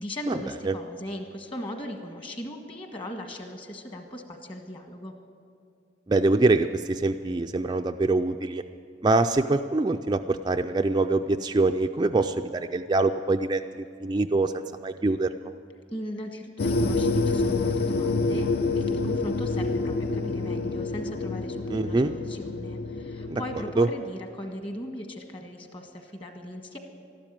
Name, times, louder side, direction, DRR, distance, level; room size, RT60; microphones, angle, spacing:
voice 1, 0.0-5.1 15.9-26.8, equal, 30° left, 4 dB, 1.5 m, -38 dB
voice 2, 6.1-8.6 9.0-15.3 21.7-22.1 23.3-23.4 23.8-23.9, right 2 dB, 25° right, 6 dB, 0.3 m, -24 dB
sound 1, 16.6-23.7, left 3 dB, 55° left, 0.5 m, -27 dB
13.0 x 12.0 x 9.0 m, 2.3 s
head